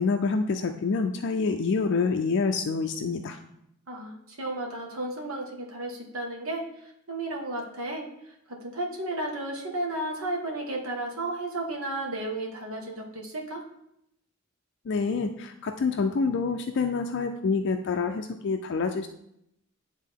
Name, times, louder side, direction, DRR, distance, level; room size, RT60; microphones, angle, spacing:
voice 1, 0.0-3.4 14.9-19.1, left 4 dB, 60° left, 5 dB, 0.4 m, -27 dB
voice 2, 3.9-6.7 7.1-8.1 8.5-13.6, right 1 dB, 80° right, 1 dB, 1.3 m, -33 dB
9.4 x 3.6 x 3.6 m, 0.77 s
head